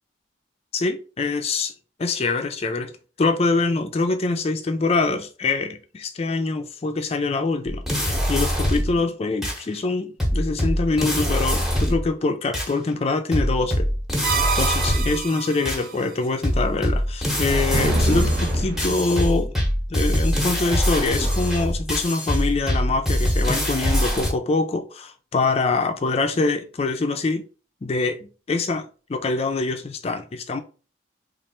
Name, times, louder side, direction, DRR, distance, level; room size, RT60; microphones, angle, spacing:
voice 1, 0.7-1.7 2.0-2.9 3.2-13.9 14.2-19.5 19.9-27.4 27.8-28.8 29.1-30.6, left 3 dB, 35° left, 0.4 m, -24 dB
sound 1, 7.7-9.0 9.4-9.6 10.2-12.1 12.5-12.7 13.3-15.2 15.6-15.8 16.4-24.3, equal, ahead, 0.8 m, -23 dB
sound 2, 14.2-15.9 17.7-19.3, right 3 dB, 50° right, 0.5 m, -26 dB
3.1 x 2.4 x 4.3 m
head